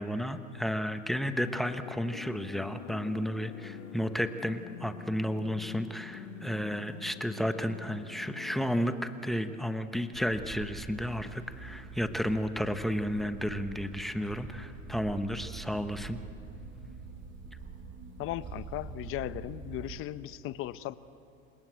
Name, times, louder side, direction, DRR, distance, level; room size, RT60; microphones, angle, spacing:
voice 1, 0.0-16.2, equal, ahead, 9 dB, 0.9 m, -32 dB
sound 1, 1.4-9.2, left 10 dB, 65° left, 1.6 m, -46 dB
sound 2, 10.1-20.0, right 4 dB, 25° right, 3.0 m, -45 dB
voice 2, 18.2-21.0, left 14 dB, 30° left, 15 dB, 0.8 m, -37 dB
27.5 x 20.5 x 8.0 m, 2.6 s
supercardioid pair, 125°, 40 cm